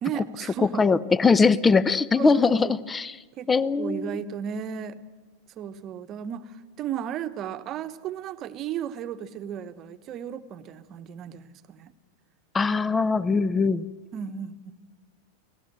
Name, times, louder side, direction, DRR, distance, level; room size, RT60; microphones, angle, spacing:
voice 1, 0.0-0.9 2.1-2.8 3.3-3.5 3.8-5.0 5.6-11.9 14.1-14.7, right 9 dB, 35° right, 11 dB, 1.2 m, -34 dB
voice 2, 0.8-3.1 3.5-4.2 12.5-13.8, left 4 dB, 15° left, 20 dB, 0.8 m, -21 dB
29.5 x 18.5 x 7.7 m, 1.4 s
figure-of-eight pair, 90°, 0 cm